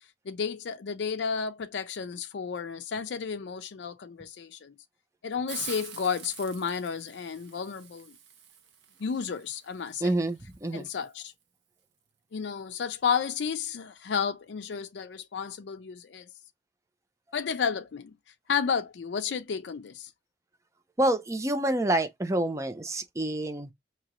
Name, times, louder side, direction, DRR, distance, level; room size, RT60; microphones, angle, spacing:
voice 1, 0.3-4.7 5.2-8.1 9.0-10.0 10.7-11.3 12.3-16.3 17.3-18.1 18.5-20.1, left 6 dB, 80° left, 0.4 m, -32 dB
Hiss, 5.5-11.1, right 8 dB, 75° right, 1.0 m, -46 dB
voice 2, 10.0-10.9 21.0-23.7, right 1 dB, 15° right, 0.6 m, -27 dB
5.0 x 2.9 x 3.0 m
head